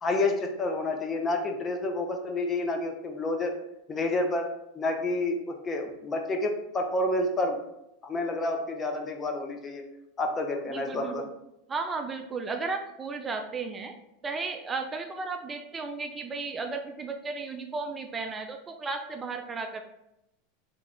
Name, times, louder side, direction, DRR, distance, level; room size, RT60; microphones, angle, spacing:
voice 1, 0.0-3.5 3.9-4.4 4.7-7.6 8.0-9.8 10.2-11.2, left 2 dB, 25° left, 3 dB, 0.6 m, -29 dB
voice 2, 10.7-11.3 11.7-13.9 14.2-19.8, right 4 dB, 20° right, 5 dB, 0.3 m, -34 dB
3.0 x 2.3 x 3.6 m, 0.86 s
hypercardioid pair, 110°, 0 cm